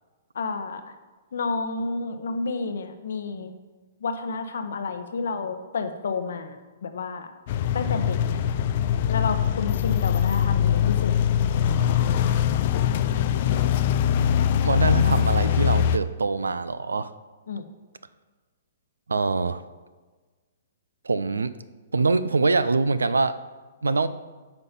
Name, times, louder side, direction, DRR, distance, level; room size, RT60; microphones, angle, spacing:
voice 1, 0.3-0.8 1.3-3.5 4.0-7.3 7.7-8.4 9.1-11.1 17.5-17.7, left 4 dB, 60° left, 9 dB, 0.9 m, -30 dB
sound 1, 7.5-16.0, left 9 dB, 45° left, 0.4 m, -22 dB
voice 2, 14.6-17.1 19.1-19.6 21.0-21.5 21.9-23.4 23.8-24.1, right 3 dB, 75° right, 14 dB, 0.4 m, -24 dB
9.0 x 5.4 x 5.5 m, 1.3 s
figure-of-eight pair, 115°, 0 cm